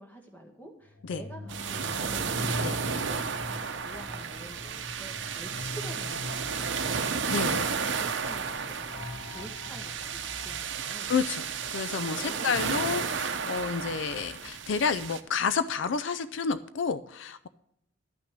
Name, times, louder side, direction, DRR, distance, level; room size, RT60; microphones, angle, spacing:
voice 1, 0.0-7.1 7.6-8.9 9.2-11.1 12.1-13.4, right 1 dB, 10° left, 2 dB, 1.7 m, -48 dB
sound 1, 0.8-12.7, left 1 dB, 45° left, 2.5 m, -42 dB
sound 2, 1.5-15.2, right 6 dB, 60° right, 0.8 m, -33 dB
voice 2, 7.3-7.7 11.1-11.5 11.7-17.5, left 5 dB, 65° left, 14 dB, 0.4 m, -30 dB
12.0 x 6.0 x 7.2 m, 0.77 s
head